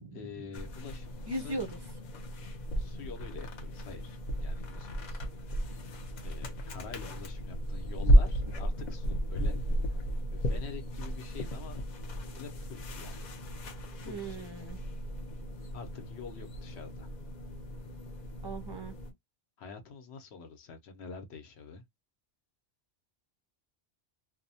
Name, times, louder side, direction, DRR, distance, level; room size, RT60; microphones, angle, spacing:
voice 1, 0.1-1.6 2.8-5.2 6.2-9.6 10.0-10.1 10.3-11.8 12.4-13.3 14.1-14.4 15.7-17.1 19.6-21.8, left 6 dB, 75° left, 0.9 m, -46 dB
sound 1, 0.5-19.1, equal, 50° left, 0.6 m, -33 dB
voice 2, 1.3-1.7 14.0-14.8 18.4-18.9, right 2 dB, 45° right, 0.3 m, -37 dB
2.6 x 2.1 x 2.6 m
omnidirectional pair, 1.1 m